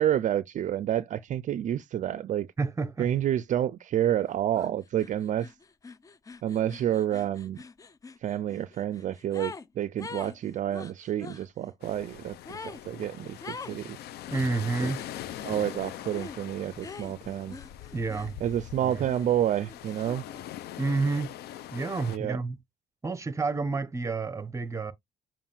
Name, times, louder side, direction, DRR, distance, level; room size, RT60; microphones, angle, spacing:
voice 1, 0.0-2.5 3.0-5.5 6.4-7.6 8.2-14.0 14.8-14.9 15.4-17.6 18.4-20.2 22.1-22.4, right 11 dB, 50° right, 0.4 m, -29 dB
voice 2, 2.6-3.1 14.3-15.0 17.9-18.4 18.8-19.1 20.8-21.3 21.7-22.6 23.0-24.9, right 3 dB, 20° right, 0.9 m, -29 dB
sound 1, 4.5-4.7 5.0-9.7 10.0-11.4 12.4-12.8 13.4-13.8 14.3-15.0 16.1-16.4 16.8-18.7 19.0-20.4, left 4 dB, 20° left, 0.5 m, -44 dB
sound 2, 11.8-22.2, left 12 dB, 70° left, 0.6 m, -42 dB
7.1 x 2.4 x 5.5 m
cardioid pair, 110°, 17 cm